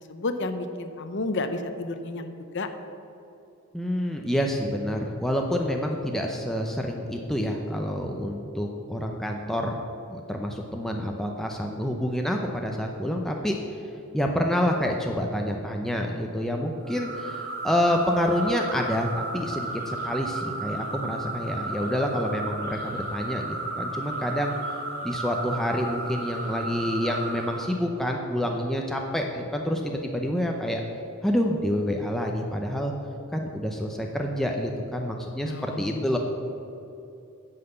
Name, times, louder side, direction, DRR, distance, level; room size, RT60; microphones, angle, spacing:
voice 1, 0.1-2.3 2.5-2.7 35.4-36.1, left 2 dB, 60° left, 9 dB, 0.7 m, -31 dB
voice 2, 3.7-9.8 10.1-13.6 14.1-24.6 25.0-30.8 31.2-32.9 33.3-36.2, equal, ahead, 1 dB, 0.6 m, -28 dB
sound 1, 16.8-27.7, right 2 dB, 50° right, 2.4 m, -34 dB
9.6 x 5.7 x 7.9 m, 2.7 s
head